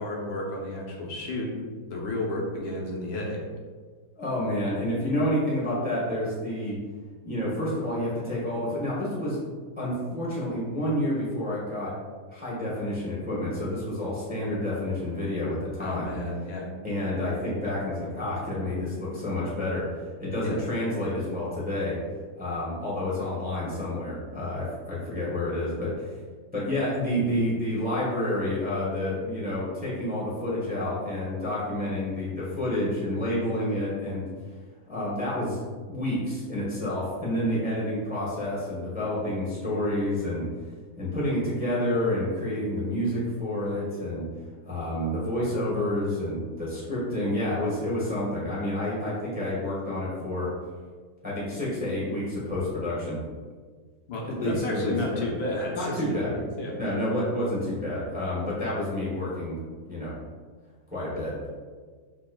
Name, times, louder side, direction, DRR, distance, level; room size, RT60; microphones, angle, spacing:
voice 1, 0.0-1.5 1.8-3.4 15.8-16.7 20.4-20.6 54.1-56.8, left 1 dB, 85° left, -1 dB, 1.6 m, -32 dB
voice 2, 4.2-6.8 7.2-9.4 9.8-11.9 12.3-16.2 16.8-19.8 20.2-22.0 22.4-26.1 26.5-34.2 34.9-35.6 35.9-40.4 41.0-44.2 44.6-50.5 51.2-53.2 54.2-55.2 55.7-56.3 56.7-59.6 59.9-60.1 60.9-61.5, left 1 dB, 5° right, -7 dB, 1.0 m, -29 dB
6.5 x 3.4 x 2.3 m, 1.5 s
omnidirectional pair, 2.0 m